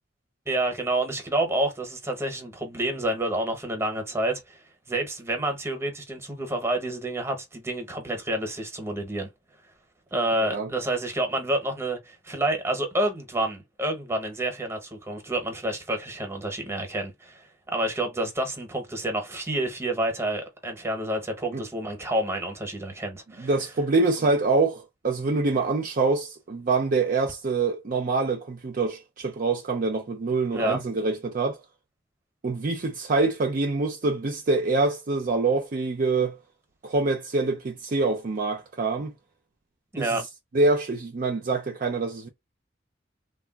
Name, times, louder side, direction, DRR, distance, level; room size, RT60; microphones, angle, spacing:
voice 1, 0.5-4.6 4.9-9.3 10.1-17.4 17.7-23.5 30.5-30.8 39.9-40.2, right 1 dB, 15° right, 0.9 m, -28 dB
voice 2, 23.4-31.6 32.4-36.4 36.8-39.1 40.0-40.2 40.5-42.3, right 3 dB, 45° right, 0.5 m, -25 dB
3.3 x 2.3 x 2.2 m
head